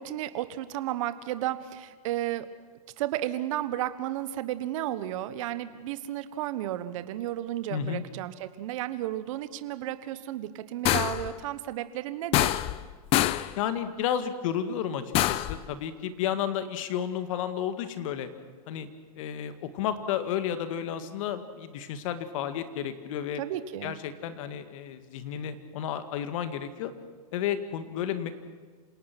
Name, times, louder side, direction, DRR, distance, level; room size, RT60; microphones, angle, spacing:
voice 1, 0.0-2.5 3.0-12.6 23.4-23.9, right 13 dB, 55° right, 12 dB, 1.3 m, -33 dB
voice 2, 7.7-8.0 13.6-18.3 18.7-18.9 19.2-23.4 23.8-26.9 27.3-28.3, left 9 dB, 55° left, 10 dB, 2.0 m, -32 dB
sound 1, 10.9-11.3 12.3-12.9 13.1-13.5 15.1-15.6, left 15 dB, 30° left, 0.6 m, -25 dB
27.5 x 18.0 x 6.1 m, 1.5 s
hypercardioid pair, 140°, 20 cm